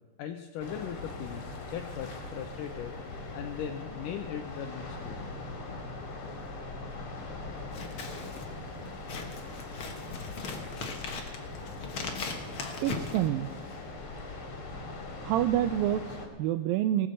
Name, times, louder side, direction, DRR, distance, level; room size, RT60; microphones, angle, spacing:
voice 1, 0.2-3.0 3.3-5.2, left 9 dB, 75° left, 5 dB, 2.0 m, -39 dB
sound 1, 0.6-16.3, left 2 dB, 40° left, 2.5 m, -41 dB
Scissors, 7.6-13.9, left 4 dB, 60° left, 1.4 m, -39 dB
voice 2, 12.0-12.3 12.8-13.5 15.2-17.1, right 12 dB, 85° right, 10 dB, 2.1 m, -28 dB
19.0 x 6.8 x 7.6 m, 1.4 s
omnidirectional pair, 4.5 m